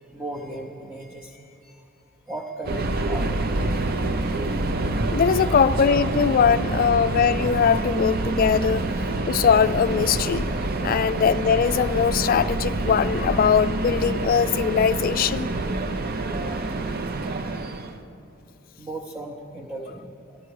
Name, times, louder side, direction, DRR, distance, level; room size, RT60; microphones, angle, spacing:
voice 1, 0.1-1.8 2.3-3.8 5.3-5.6 18.8-20.4, right 1 dB, 10° right, -1 dB, 0.7 m, -37 dB
Subway metro underground, 2.6-18.0, right 2 dB, 50° right, 0.6 m, -27 dB
voice 2, 5.1-8.9 9.3-10.5 10.8-15.5, left 7 dB, 45° left, 15 dB, 0.3 m, -21 dB
14.0 x 12.5 x 4.7 m, 2.7 s
head